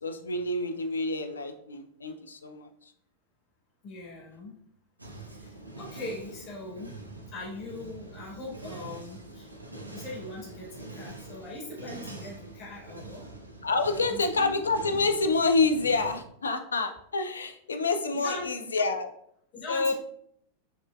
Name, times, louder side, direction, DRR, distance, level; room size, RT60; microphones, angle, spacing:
voice 1, 0.0-2.9 13.6-19.1 19.7-19.9, left 3 dB, 75° left, 7 dB, 0.3 m, -28 dB
voice 2, 3.8-4.6 5.4-6.9 7.3-9.5 9.9-13.3 14.1-14.5 18.1-18.5 19.5-19.9, left 2 dB, 35° left, -4 dB, 1.3 m, -40 dB
sound 1, 5.0-16.2, right 2 dB, 80° right, 0.4 m, -44 dB
4.1 x 2.5 x 2.2 m, 0.68 s
figure-of-eight pair, 90°, 0 cm